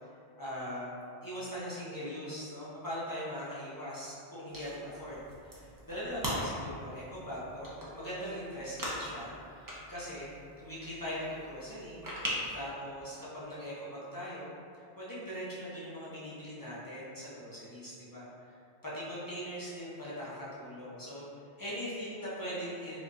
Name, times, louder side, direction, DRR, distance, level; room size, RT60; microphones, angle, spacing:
voice 1, 0.4-1.0 1.2-12.0 12.5-18.5 18.8-21.3 21.6-23.0, equal, 25° left, -10 dB, 0.6 m, -41 dB
sound 1, 4.5-12.7, equal, 30° right, 0.4 m, -41 dB
4.4 x 2.4 x 2.6 m, 2.5 s
omnidirectional pair, 1.2 m